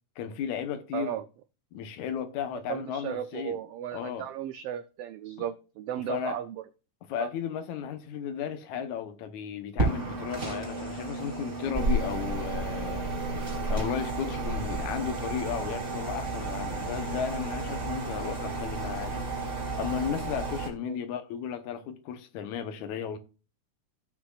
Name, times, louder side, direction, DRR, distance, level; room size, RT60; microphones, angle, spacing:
voice 1, 0.2-1.2 1.7-3.6 3.9-4.3 6.1-6.4 7.1-13.1 13.7-19.3 19.8-23.2, left 8 dB, 80° left, 2.3 m, -34 dB
voice 2, 0.9-1.2 2.7-6.6 7.2-7.3 20.8-21.0, right 10 dB, 85° right, 1.3 m, -35 dB
sound 1, 9.8-20.7, right 2 dB, 25° right, 3.2 m, -32 dB
16.0 x 6.0 x 2.4 m
omnidirectional pair, 3.3 m